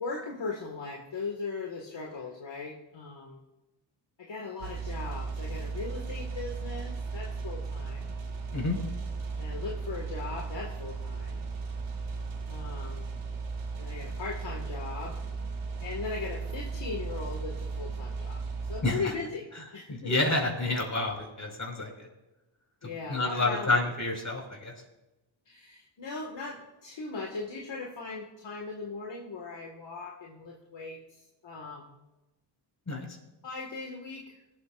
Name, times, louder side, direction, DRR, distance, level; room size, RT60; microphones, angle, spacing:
voice 1, 0.0-3.4 4.2-8.1 9.4-11.4 12.5-13.1 13.8-15.2 15.8-18.4 18.7-19.5 19.7-20.1 22.8-24.0 25.5-32.0 33.4-34.4, left 4 dB, 60° left, 0 dB, 2.1 m, -39 dB
sound 1, 4.6-18.8, right 4 dB, 90° right, 2.0 m, -36 dB
voice 2, 19.9-22.1 23.1-24.7 32.9-33.1, left 2 dB, 35° left, 1 dB, 5.4 m, -29 dB
18.0 x 13.5 x 2.6 m, 0.99 s
cardioid pair, 55°, 48 cm